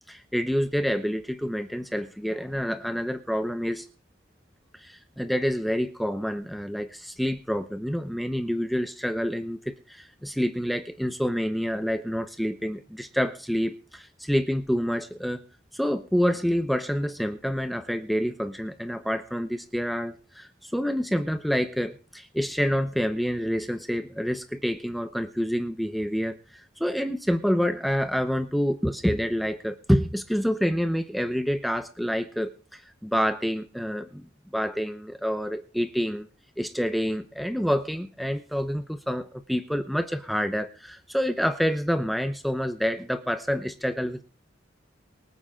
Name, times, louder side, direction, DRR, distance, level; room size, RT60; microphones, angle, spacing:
voice 1, 0.1-3.9 4.7-15.4 15.7-34.2 34.5-36.3 36.6-44.2, equal, ahead, 9 dB, 0.7 m, -27 dB
23.5 x 8.8 x 3.7 m, 0.38 s
head